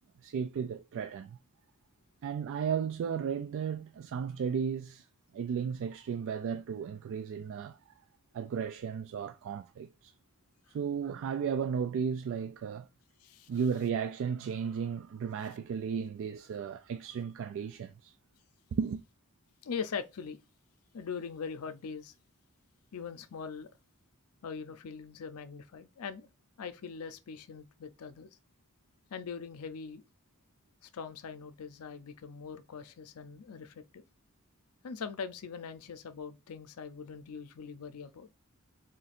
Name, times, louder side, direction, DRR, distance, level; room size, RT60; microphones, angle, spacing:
voice 1, 0.2-1.4 2.2-5.1 5.3-7.8 8.3-10.1 10.7-12.9 13.5-18.1 18.7-19.0, right 6 dB, 60° right, 0.3 m, -34 dB
voice 2, 19.6-20.4 20.9-22.1 22.9-23.7 24.4-26.3 26.6-28.3 29.1-30.0 30.8-34.0 34.8-38.3, left 6 dB, 85° left, 0.5 m, -41 dB
3.8 x 2.5 x 4.1 m
head